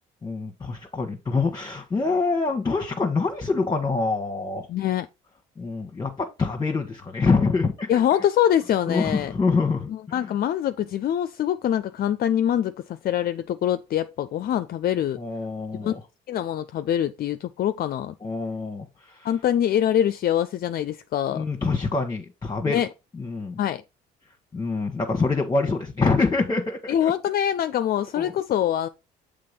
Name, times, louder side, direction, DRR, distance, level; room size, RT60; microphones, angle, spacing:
voice 1, 0.2-4.7 5.6-7.9 8.9-9.9 15.2-16.0 18.2-19.3 21.3-22.8 23.2-23.6 24.5-27.1 28.2-28.3, left 4 dB, 20° left, 1.1 m, -25 dB
voice 2, 4.7-5.1 7.9-9.3 9.9-15.2 15.7-15.9 16.3-18.1 19.2-21.5 22.6-22.9 23.6-23.8 26.9-28.9, left 10 dB, 50° left, 0.4 m, -24 dB
6.7 x 3.5 x 5.1 m
supercardioid pair, 65°, 20 cm